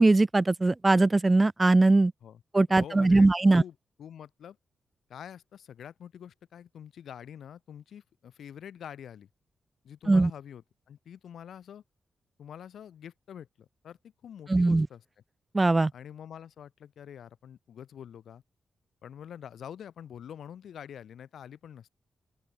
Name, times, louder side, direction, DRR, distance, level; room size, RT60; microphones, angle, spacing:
voice 1, 0.0-2.1 2.5-3.6 10.1-10.3 14.5-14.9 15.5-15.9, right 2 dB, 15° right, 0.3 m, -21 dB
voice 2, 2.7-4.6 5.1-9.3 9.8-11.8 12.4-15.0 15.9-18.4 19.0-21.9, left 9 dB, 75° left, 3.5 m, -46 dB
open air
wide cardioid pair, 165°, 0 cm